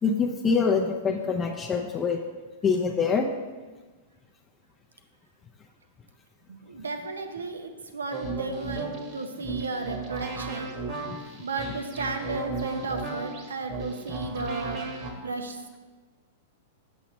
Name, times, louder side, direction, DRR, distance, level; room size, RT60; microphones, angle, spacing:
voice 1, 0.0-2.2 2.6-3.3 11.1-11.2, left 5 dB, 25° left, 1 dB, 0.5 m, -25 dB
voice 2, 6.5-10.7 11.4-14.9 15.2-15.8, right 3 dB, 90° right, 6 dB, 0.7 m, -34 dB
sound 1, 8.1-15.1, right 3 dB, 40° right, 1.4 m, -35 dB
7.2 x 5.8 x 3.1 m, 1.3 s
hypercardioid pair, 110°, 0 cm